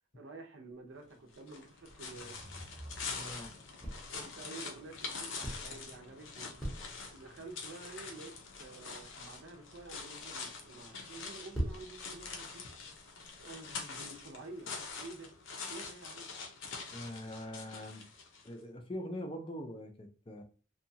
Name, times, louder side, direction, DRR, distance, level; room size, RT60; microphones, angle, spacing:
voice 1, 0.1-2.4 4.1-6.5 7.1-8.3 8.6-12.6 13.4-14.7 15.0-15.3 15.7-16.3, right 2 dB, 70° right, 0.6 m, -49 dB
sound 1, 0.7-3.4 3.8-4.4 5.1-6.1 6.4-7.5 8.0-8.2 8.4-15.0, right 1 dB, ahead, 0.8 m, -44 dB
sound 2, 1.3-18.5, left 4 dB, 70° left, 0.6 m, -45 dB
sound 3, 2.0-3.9, equal, 35° right, 0.7 m, -51 dB
voice 2, 3.2-3.5 16.9-18.0 18.4-20.4, left 1 dB, 25° left, 0.4 m, -43 dB
2.7 x 2.2 x 2.7 m
head